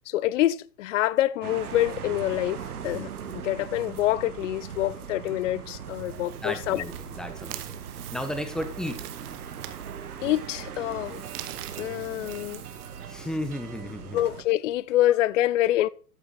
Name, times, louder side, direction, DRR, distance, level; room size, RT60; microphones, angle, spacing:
voice 1, 0.1-2.6 2.8-6.8 10.2-11.2 11.8-12.6 14.1-15.9, left 14 dB, 55° left, 0.6 m, -26 dB
sound 1, 1.4-14.4, right 7 dB, 70° right, 1.9 m, -39 dB
voice 2, 2.9-3.3 6.4-7.8 8.1-9.0 13.1-14.2, left 1 dB, ahead, 1.1 m, -34 dB
sound 2, 5.8-13.5, right 13 dB, 40° right, 1.3 m, -45 dB
13.0 x 6.7 x 4.2 m
hypercardioid pair, 125°, 46 cm